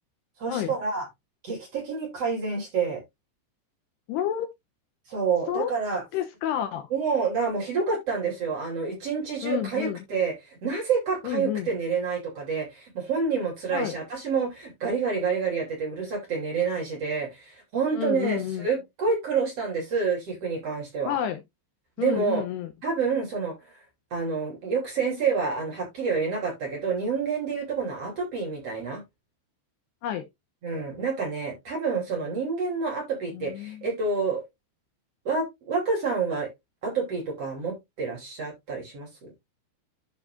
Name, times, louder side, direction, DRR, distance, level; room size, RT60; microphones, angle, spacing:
voice 1, 0.4-1.1 1.4-3.0 5.1-6.0 6.9-10.3 10.6-21.2 22.0-22.4 22.8-23.5 24.1-29.0 30.6-34.4 35.2-36.5 36.8-39.3, right 5 dB, 40° right, 3.4 m, -28 dB
voice 2, 4.1-4.5 5.5-5.7 6.1-6.9 9.4-10.0 11.2-11.7 13.7-13.9 17.9-18.7 21.1-21.4 22.0-22.7 30.0-30.3 33.3-33.9, left 10 dB, 75° left, 2.6 m, -29 dB
12.0 x 4.6 x 2.5 m
omnidirectional pair, 5.2 m